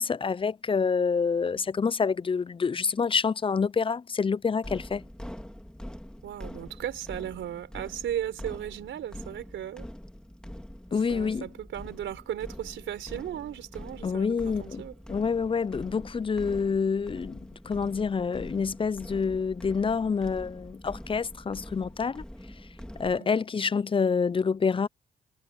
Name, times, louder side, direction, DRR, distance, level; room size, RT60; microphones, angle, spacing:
voice 1, 0.0-5.0 10.9-11.4 14.0-22.2 23.0-24.9, left 5 dB, 30° left, 0.5 m, -27 dB
sound 1, 4.6-23.2, equal, 5° left, 3.0 m, -44 dB
voice 2, 6.2-9.9 11.1-14.9 23.1-23.3, right 11 dB, 85° right, 4.7 m, -36 dB
cardioid pair, 60°, 19 cm